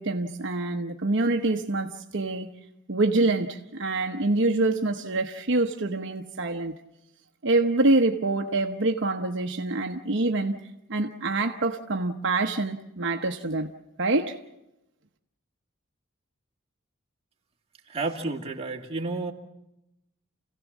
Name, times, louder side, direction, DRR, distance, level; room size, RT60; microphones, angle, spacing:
voice 1, 0.0-2.5 2.9-6.7 7.4-10.6 10.9-13.7 14.0-14.4, right 2 dB, 60° right, 4 dB, 1.0 m, -25 dB
voice 2, 17.9-19.3, right 3 dB, 30° right, 0 dB, 2.3 m, -31 dB
29.5 x 16.5 x 7.3 m, 0.89 s
head